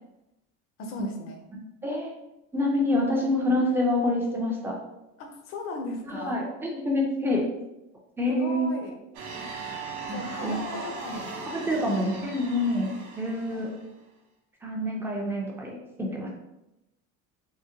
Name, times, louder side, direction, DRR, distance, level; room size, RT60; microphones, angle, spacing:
voice 1, 0.8-1.4 5.2-6.4 8.3-8.9 10.1-11.4 11.6-12.1 13.5-13.7, left 2 dB, 45° left, 4 dB, 0.5 m, -37 dB
voice 2, 2.5-4.8 6.1-7.4 8.2-8.7 10.1-10.6 11.7-13.7 14.6-16.3, left 1 dB, 10° right, -1 dB, 0.4 m, -27 dB
sound 1, 9.1-13.8, right 4 dB, 70° right, 0.7 m, -38 dB
3.7 x 2.1 x 2.7 m, 0.91 s
cardioid pair, 160°, 31 cm